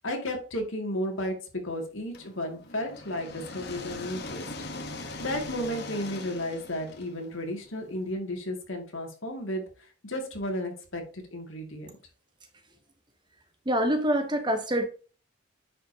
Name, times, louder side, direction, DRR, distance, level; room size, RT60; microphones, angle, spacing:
voice 1, 0.0-1.4 1.6-4.4 5.0-9.6 10.0-11.9, left 1 dB, 70° left, 2.2 m, -33 dB
sound 1, 2.1-8.0, left 2 dB, 50° left, 1.2 m, -41 dB
voice 2, 13.6-14.9, equal, 20° right, 0.9 m, -25 dB
9.9 x 5.0 x 2.8 m
head